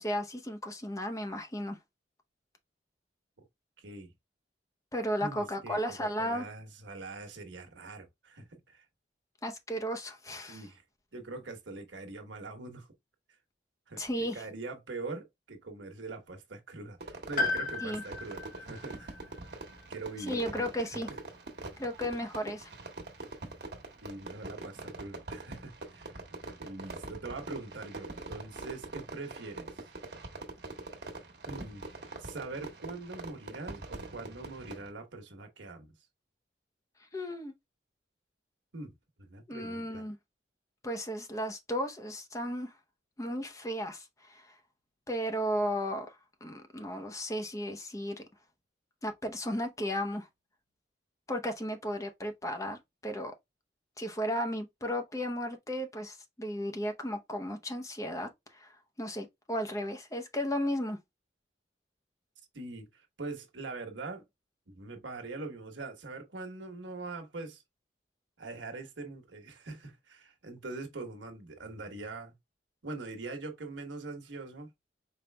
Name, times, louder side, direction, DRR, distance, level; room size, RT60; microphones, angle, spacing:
voice 1, 0.0-1.8 4.9-6.5 9.4-10.6 14.0-14.4 17.8-18.0 20.3-21.1 21.8-22.7 37.1-37.5 39.5-40.2 40.8-42.7 43.2-44.5 45.1-46.2 46.4-48.2 49.0-50.3 51.3-53.3 54.0-58.7 59.0-61.0, equal, 15° left, 0.7 m, -34 dB
voice 2, 3.8-4.1 5.2-8.8 10.5-10.8 11.1-12.9 13.9-19.2 19.9-20.7 24.0-26.2 26.6-29.8 31.4-31.8 32.2-35.9 38.7-38.9 39.2-40.1 62.5-64.2 64.7-67.6 68.4-72.3 72.8-74.7, right 3 dB, 85° right, 1.2 m, -43 dB
Fireworks, 17.0-34.9, right 2 dB, 65° right, 1.4 m, -44 dB
Piano, 17.4-21.3 21.5-21.6 22.8-22.9, left 3 dB, 50° left, 1.0 m, -37 dB
5.2 x 4.0 x 2.2 m
head